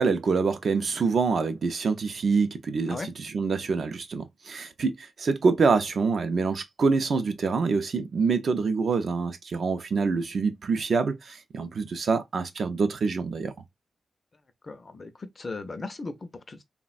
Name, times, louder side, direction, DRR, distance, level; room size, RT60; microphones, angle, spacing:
voice 1, 0.0-13.5, right 4 dB, 50° right, 0.4 m, -26 dB
voice 2, 14.6-16.6, left 3 dB, 30° left, 0.4 m, -37 dB
3.4 x 2.1 x 2.3 m
wide cardioid pair, 175°, 0 cm